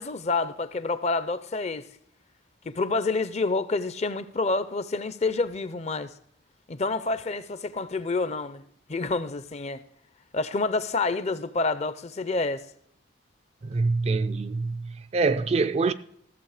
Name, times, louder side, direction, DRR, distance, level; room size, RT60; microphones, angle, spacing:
voice 1, 0.0-1.9 2.6-6.1 6.7-8.6 8.9-9.8 10.3-12.6, left 3 dB, 35° left, 0.5 m, -28 dB
voice 2, 13.6-15.9, right 3 dB, 30° right, 0.3 m, -25 dB
14.5 x 7.3 x 4.9 m
head